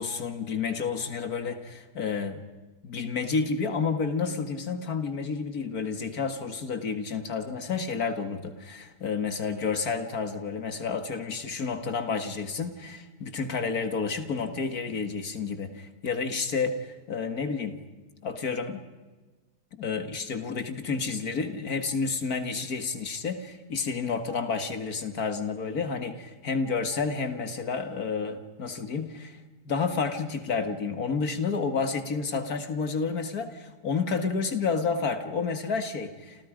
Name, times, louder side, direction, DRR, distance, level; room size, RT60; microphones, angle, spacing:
voice 1, 0.0-2.4 2.8-17.8 18.2-18.8 19.7-29.4 29.7-36.5, left 5 dB, 60° left, 8 dB, 2.3 m, -30 dB
29.0 x 28.0 x 5.1 m, 1.3 s
omnidirectional pair, 1.8 m